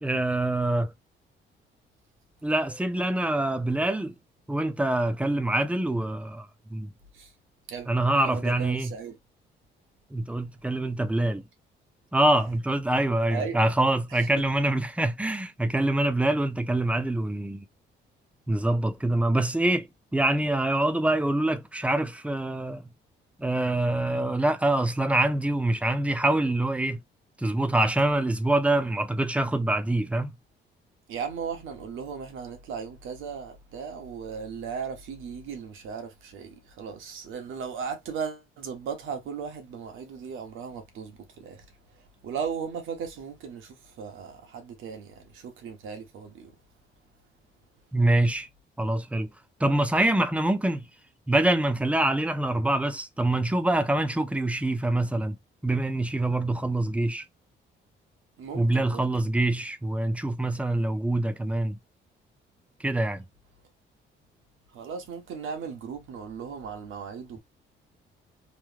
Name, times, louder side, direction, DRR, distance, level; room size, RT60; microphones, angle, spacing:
voice 1, 0.0-0.9 2.4-4.2 4.5-6.9 7.9-8.9 10.1-11.4 12.1-17.6 18.5-22.9 23.4-27.0 27.4-30.4 47.9-48.5 48.8-49.3 49.6-50.9 51.3-55.4 55.6-57.2 58.5-61.8 62.8-63.3, right 1 dB, 5° right, 0.5 m, -25 dB
voice 2, 7.7-9.1 13.3-13.6 14.1-14.3 31.1-41.6 41.9-46.5 58.4-59.1 64.7-67.4, right 6 dB, 85° right, 1.1 m, -37 dB
3.2 x 2.1 x 3.3 m
cardioid pair, 90°, 20 cm